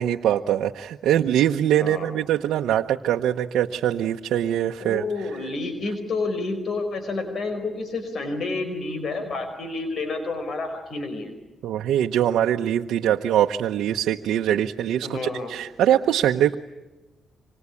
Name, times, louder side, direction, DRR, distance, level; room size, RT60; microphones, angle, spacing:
voice 1, 0.0-5.3 11.6-16.6, right 11 dB, 85° right, 2 dB, 1.0 m, -23 dB
voice 2, 1.8-2.1 4.8-11.3 15.0-15.5, left 3 dB, 60° left, 8 dB, 5.1 m, -29 dB
26.5 x 26.0 x 8.6 m, 1.1 s
cardioid pair, 75°, 0 cm